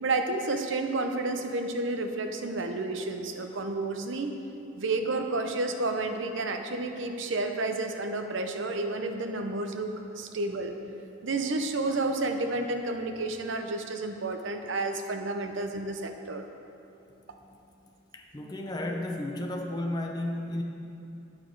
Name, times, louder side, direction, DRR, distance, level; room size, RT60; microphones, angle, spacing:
voice 1, 0.0-4.3 4.8-10.7 11.2-16.4, right 2 dB, 60° right, 5 dB, 0.6 m, -31 dB
voice 2, 17.3-17.7 18.1-20.6, left 1 dB, 20° left, 1 dB, 0.6 m, -33 dB
8.7 x 6.2 x 4.6 m, 2.7 s
head